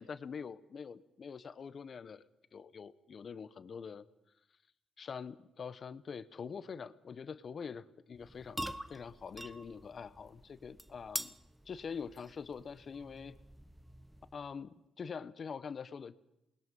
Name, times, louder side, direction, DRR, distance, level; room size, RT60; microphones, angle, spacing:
voice 1, 0.0-2.2 2.5-4.0 5.0-11.3 11.7-13.4 14.3-16.2, left 6 dB, 45° left, 15 dB, 0.9 m, -45 dB
sound 1, 8.2-14.6, equal, 5° right, 0.8 m, -46 dB
27.5 x 20.5 x 5.4 m, 0.86 s
cardioid pair, 90°, 0 cm